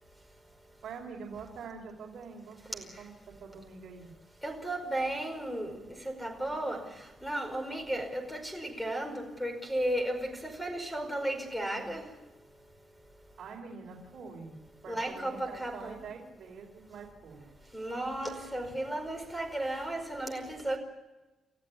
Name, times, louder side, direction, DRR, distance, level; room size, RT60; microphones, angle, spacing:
voice 1, 0.8-4.1 13.4-17.5, right 5 dB, 60° right, -2 dB, 4.4 m, -45 dB
voice 2, 4.4-5.7 6.2-6.8 7.2-12.0 14.9-16.0 17.7-20.8, right 1 dB, ahead, 6 dB, 5.0 m, -34 dB
29.5 x 14.5 x 9.4 m, 1.1 s
wide cardioid pair, 150°, 0 cm